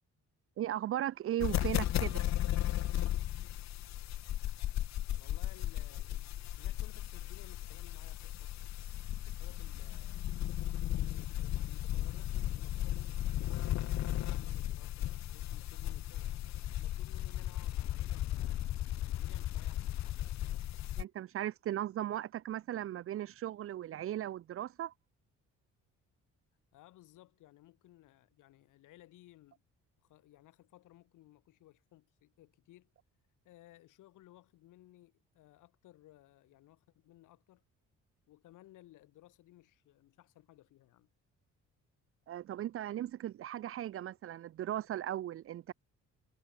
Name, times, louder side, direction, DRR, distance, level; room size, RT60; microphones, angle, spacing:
voice 1, 0.6-2.2 21.0-24.9 42.3-45.7, right 12 dB, 50° right, 0.4 m, -37 dB
sound 1, 1.4-21.0, left 13 dB, 65° left, 0.9 m, -35 dB
voice 2, 5.1-8.7 9.1-10.3 10.9-16.3 16.8-20.4 26.7-29.6 30.0-32.9 33.4-37.6 38.3-41.1, left 15 dB, 90° left, 4.7 m, -60 dB
cardioid pair, 90°, 30 cm